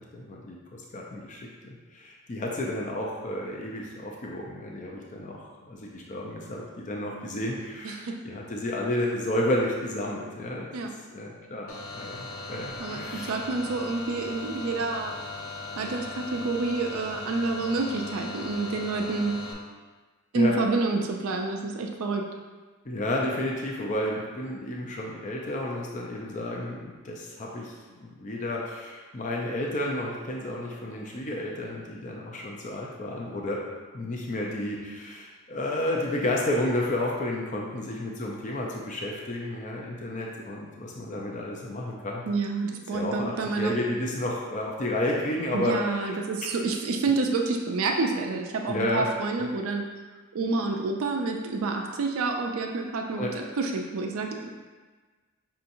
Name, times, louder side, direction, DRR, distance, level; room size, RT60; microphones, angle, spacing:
voice 1, 0.0-1.4 1.9-8.0 8.2-10.7 11.1-13.3 20.3-20.5 22.9-33.6 33.9-42.2 42.9-45.7 48.7-49.1 49.4-49.5 53.2-53.3, left 1 dB, 35° left, -2 dB, 0.5 m, -31 dB
voice 2, 7.8-8.2 10.7-10.9 12.8-15.1 15.8-19.4 20.3-22.2 42.3-43.8 45.5-49.8 50.3-54.5, right 3 dB, 70° right, 2 dB, 0.4 m, -28 dB
sound 1, 11.7-19.5, left 3 dB, 75° left, 0.6 m, -38 dB
5.5 x 2.8 x 2.6 m, 1.3 s
head